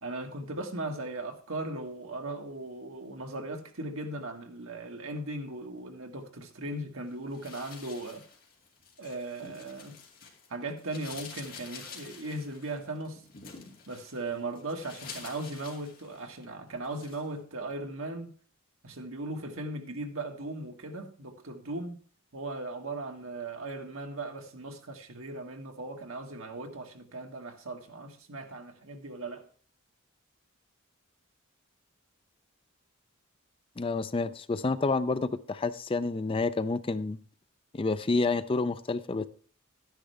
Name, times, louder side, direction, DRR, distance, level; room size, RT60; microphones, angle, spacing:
voice 1, 0.0-8.2 9.0-10.0 10.5-13.2 13.9-18.3 18.8-22.0 22.3-29.4, right 2 dB, 75° right, 1.6 m, -38 dB
sound 1, 7.3-10.5 10.8-16.4 16.8-17.3, left 5 dB, 45° left, 2.5 m, -48 dB
voice 2, 33.8-37.2 37.7-39.3, left 3 dB, 25° left, 0.4 m, -29 dB
12.5 x 10.0 x 3.4 m
head